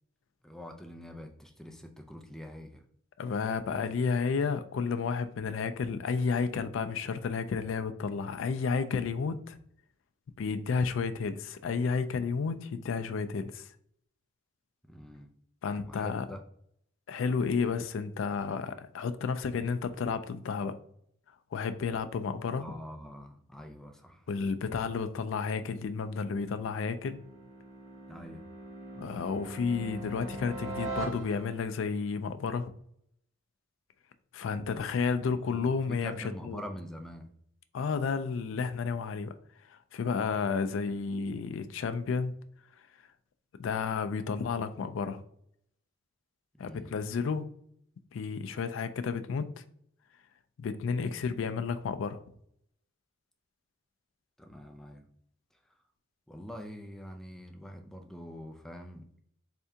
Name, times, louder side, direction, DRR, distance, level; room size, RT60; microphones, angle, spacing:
voice 1, 0.4-2.8 14.9-15.3 15.7-16.4 22.6-24.2 28.1-28.4 34.7-34.8 35.2-37.3 46.5-46.9 54.4-55.0 56.3-59.1, equal, ahead, 0.3 m, -45 dB
voice 2, 3.2-9.6 10.4-13.7 15.6-16.3 17.1-20.8 21.5-22.7 24.3-27.2 28.9-32.7 34.3-36.6 37.7-42.3 43.6-45.2 46.6-47.5 48.1-49.6 50.6-52.2, left 5 dB, 75° left, 0.3 m, -32 dB
sound 1, 25.5-31.8, right 2 dB, 75° right, 0.9 m, -42 dB
3.6 x 3.3 x 2.7 m
head